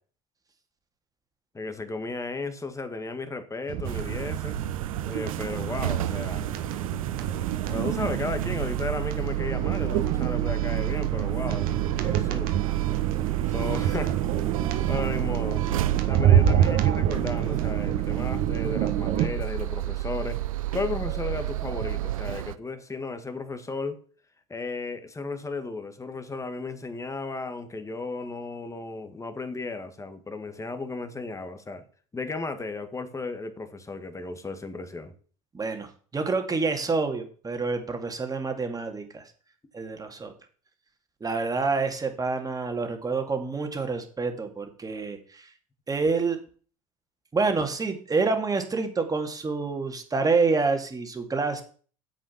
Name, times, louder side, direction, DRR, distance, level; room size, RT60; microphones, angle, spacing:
voice 1, 1.5-4.5 5.0-6.5 7.7-11.7 12.0-12.5 13.5-14.1 14.9-15.6 16.1-20.4 20.7-24.0 24.5-31.8 32.1-35.1, left 3 dB, 15° left, 1.8 m, -34 dB
sound 1, 3.7-19.3, right 10 dB, 60° right, 1.4 m, -27 dB
sound 2, 3.8-22.6, right 15 dB, 80° right, 0.6 m, -31 dB
voice 2, 35.5-35.9 36.1-39.2 39.7-40.3 41.2-45.5 45.9-46.4 47.3-51.6, right 4 dB, 20° right, 2.4 m, -27 dB
8.8 x 7.7 x 5.8 m
hypercardioid pair, 70°, 17 cm